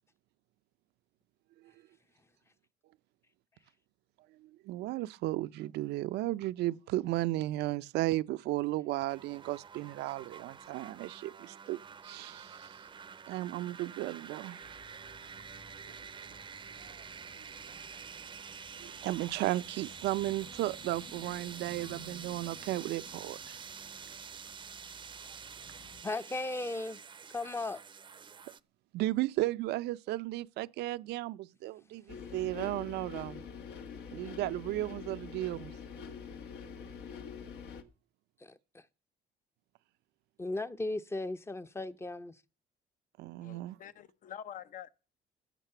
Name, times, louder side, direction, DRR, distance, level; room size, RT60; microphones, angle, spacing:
voice 1, 4.4-11.8 12.0-12.8 13.3-15.1 15.8-15.9 16.8-17.0 18.8-23.6 28.9-33.4 34.1-35.7 43.2-43.8, right 16 dB, 80° right, 0.5 m, -35 dB
sound 1, 9.1-28.6, right 6 dB, 30° right, 0.6 m, -48 dB
sound 2, 14.6-26.0, left 4 dB, 35° left, 1.2 m, -57 dB
voice 2, 26.0-27.0 27.3-27.8 38.4-38.6 40.4-42.3, left 2 dB, 15° left, 0.7 m, -36 dB
sound 3, 32.1-37.8, left 6 dB, 75° left, 1.4 m, -45 dB
voice 3, 43.4-44.9, left 10 dB, 50° left, 0.7 m, -46 dB
15.0 x 6.6 x 6.7 m
cardioid pair, 110°, 17 cm